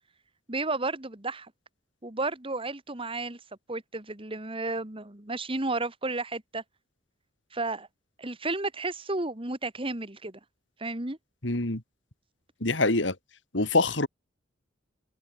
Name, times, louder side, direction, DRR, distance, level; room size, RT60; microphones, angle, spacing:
voice 1, 0.5-1.5 2.0-3.4 3.7-6.6 7.5-7.9 8.2-10.4 10.8-11.2, right 2 dB, 30° right, 2.0 m, -32 dB
voice 2, 11.4-11.8 12.6-13.1 13.5-14.1, left 2 dB, 70° left, 3.1 m, -25 dB
head